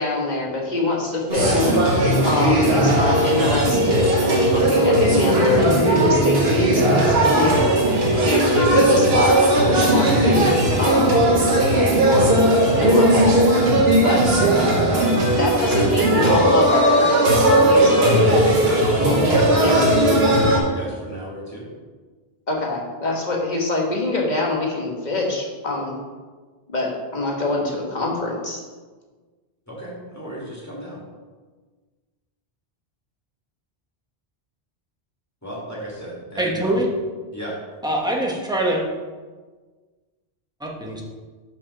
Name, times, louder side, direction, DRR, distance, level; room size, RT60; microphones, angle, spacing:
voice 1, 0.0-10.5 10.8-11.1 12.0-12.4 12.8-13.3 14.0-14.4 15.4-18.1 19.6-19.7 22.5-26.0 26.7-28.6, left 2 dB, 45° left, -2 dB, 1.5 m, -24 dB
sound 1, 1.3-20.6, right 1 dB, 75° right, 1.5 m, -17 dB
voice 2, 17.6-21.7 29.7-31.0 35.4-36.8 37.3-37.5, equal, 15° left, -6 dB, 2.1 m, -31 dB
voice 3, 36.4-36.9 37.8-38.8 40.6-41.0, right 1 dB, 5° right, -2 dB, 1.1 m, -23 dB
5.6 x 5.2 x 6.0 m, 1.4 s
omnidirectional pair, 1.1 m